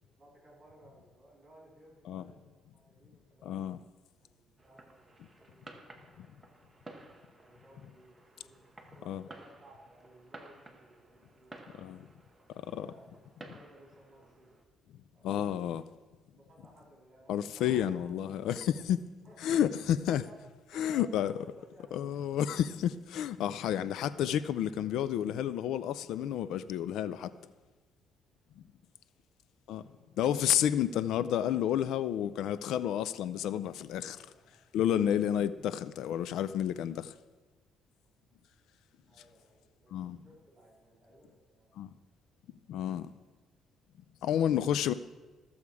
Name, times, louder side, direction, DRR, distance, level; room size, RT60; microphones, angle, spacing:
voice 1, 0.2-3.7 4.2-6.8 7.4-12.1 12.6-13.2 13.5-14.6 15.1-15.7 16.3-18.7 19.2-19.6 20.2-20.4 20.7-22.1 29.9-30.1 34.1-34.6 39.1-41.8 42.8-43.1, right 1 dB, 25° right, 3.9 m, -59 dB
voice 2, 3.4-3.8 6.2-6.3 9.1-9.2 11.8-12.1 12.7-12.9 15.2-15.8 17.3-19.0 19.4-20.2 20.8-21.3 21.9-27.3 29.7-29.8 30.2-34.2 34.7-37.2 39.9-40.2 41.8-41.9 42.7-43.1 44.2-44.9, left 10 dB, 70° left, 0.3 m, -30 dB
Fireworks, 4.6-14.6, right 2 dB, 10° right, 0.8 m, -54 dB
14.0 x 7.0 x 4.8 m
cardioid pair, 175°, 0 cm